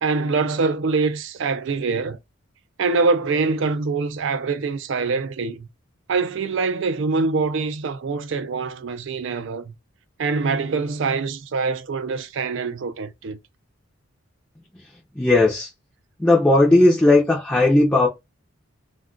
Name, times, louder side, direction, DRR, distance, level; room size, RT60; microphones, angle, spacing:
voice 1, 0.0-2.2 2.8-5.7 6.1-9.7 10.2-13.4, right 4 dB, 60° right, 0.4 m, -24 dB
voice 2, 14.7-15.7 16.2-18.1, left 2 dB, 10° left, 0.6 m, -17 dB
2.3 x 2.3 x 3.7 m
head